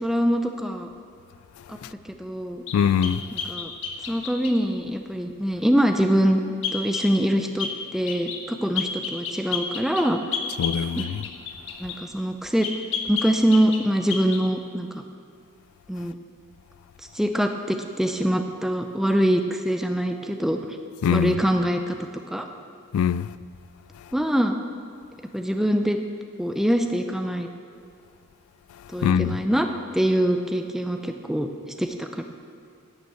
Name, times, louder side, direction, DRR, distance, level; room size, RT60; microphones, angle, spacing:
voice 1, 0.0-0.9 1.7-1.8 2.2-2.6 3.3-3.7 4.1-6.4 6.7-10.2 11.0-11.1 11.8-12.7 13.1-15.0 15.9-16.1 17.1-20.6 21.1-22.0 22.3-22.5 24.1-24.6 25.3-26.0 26.4-27.5 28.9-29.7 29.9-31.5 31.8-32.2, equal, ahead, 0.5 m, -24 dB
voice 2, 2.7-3.2 10.6-11.2 21.0-21.4 22.9-23.3 29.0-29.4, left 7 dB, 85° left, 0.3 m, -22 dB
sound 1, 2.7-4.6 6.6-7.1 7.6-7.8 8.1-8.4 8.8-12.0 12.6-13.8 14.1-14.4, left 6 dB, 65° left, 1.1 m, -31 dB
11.0 x 7.0 x 7.8 m
head